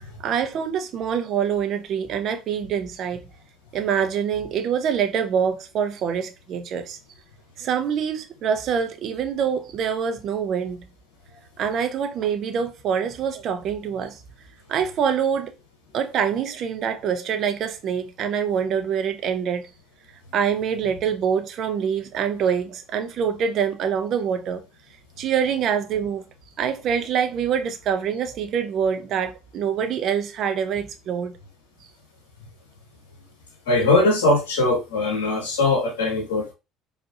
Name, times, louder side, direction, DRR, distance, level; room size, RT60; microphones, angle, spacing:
voice 1, 0.2-3.2 3.7-7.0 7.6-10.8 11.6-14.2 14.7-15.5 15.9-19.7 20.3-24.6 25.2-26.2 26.6-31.3, right 7 dB, 55° right, 0.7 m, -25 dB
voice 2, 33.7-36.5, left 2 dB, 80° left, 0.8 m, -21 dB
4.7 x 2.6 x 2.5 m
hypercardioid pair, 60°, 0 cm